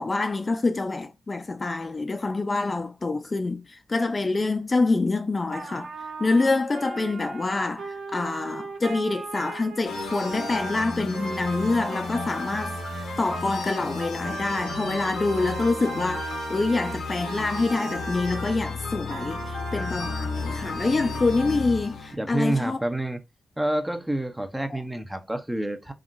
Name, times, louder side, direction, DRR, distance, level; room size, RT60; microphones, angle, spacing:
voice 1, 0.0-5.9 6.2-22.8 24.7-24.8, left 3 dB, 40° left, 0.4 m, -26 dB
Trumpet, 5.5-18.6 19.1-21.6, right 5 dB, 75° right, 0.5 m, -38 dB
sound 1, 9.8-22.1, left 3 dB, 80° left, 0.7 m, -33 dB
voice 2, 22.1-23.2 23.6-25.9, right 1 dB, 10° right, 0.6 m, -28 dB
3.6 x 2.3 x 2.5 m
supercardioid pair, 50°, 0 cm